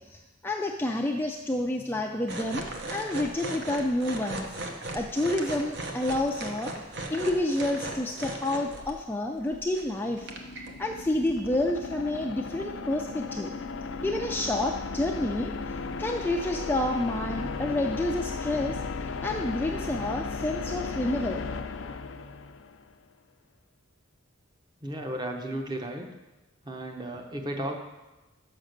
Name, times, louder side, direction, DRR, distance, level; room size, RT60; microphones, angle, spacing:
voice 1, 0.1-4.5 4.9-6.7 7.1-10.3 10.8-13.5 14.0-15.5 16.0-18.8 19.2-21.4, left 1 dB, 10° left, 2 dB, 0.3 m, -29 dB
sound 1, 2.3-9.0 9.4-9.9 10.2-10.7 11.3-11.4, right 2 dB, 55° right, 0.9 m, -37 dB
sound 2, 9.8-22.9, left 4 dB, 70° left, 0.5 m, -35 dB
voice 2, 24.8-26.1 26.6-27.7, right 1 dB, 20° right, 3 dB, 0.8 m, -34 dB
6.2 x 5.9 x 6.5 m, 1.1 s
head